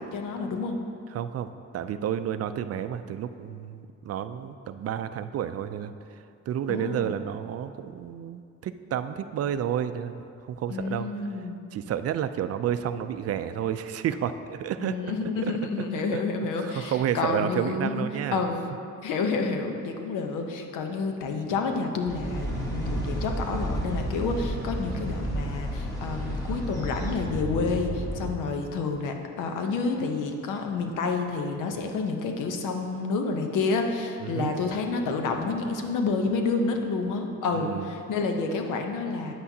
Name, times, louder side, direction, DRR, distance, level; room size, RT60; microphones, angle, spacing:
voice 1, 0.1-0.8 6.7-7.2 10.7-11.6 14.8-18.0 18.3-18.6 19.0-39.3, left 4 dB, 90° left, 4 dB, 0.8 m, -29 dB
voice 2, 1.1-5.9 6.5-11.1 11.3-11.4 11.7-15.9 16.1-16.2 16.6-18.4 34.2-34.5 37.5-37.9, right 9 dB, 55° right, 11 dB, 0.4 m, -31 dB
sound 1, 22.1-28.3, right 1 dB, 15° left, 1.8 m, -31 dB
9.4 x 8.3 x 2.8 m, 2.4 s
cardioid pair, 90°, 30 cm